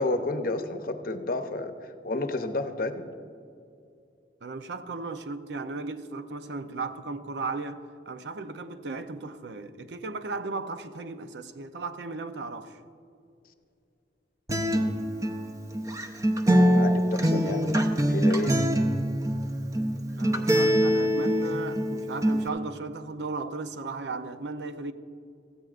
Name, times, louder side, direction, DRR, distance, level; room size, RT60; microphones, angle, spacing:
voice 1, 0.0-1.7 2.0-3.0 16.5-17.8 18.1-18.6, left 2 dB, 50° left, 0.7 m, -30 dB
voice 2, 4.4-12.8 17.2-17.6 20.2-24.9, right 3 dB, 70° right, 0.6 m, -36 dB
Acoustic guitar, 14.5-22.5, equal, 20° right, 0.6 m, -24 dB
17.0 x 14.5 x 2.5 m
head